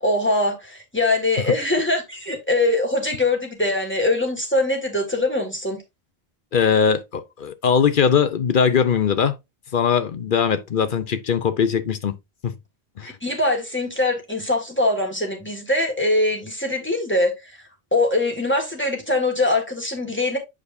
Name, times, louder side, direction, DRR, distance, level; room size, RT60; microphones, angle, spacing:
voice 1, 0.0-5.8 13.0-17.3 17.9-20.4, left 2 dB, 10° left, 1.9 m, -22 dB
voice 2, 6.5-9.4 9.7-12.2 12.4-12.5 13.0-13.1, left 7 dB, 60° left, 0.8 m, -20 dB
8.4 x 5.0 x 2.6 m
omnidirectional pair, 1.0 m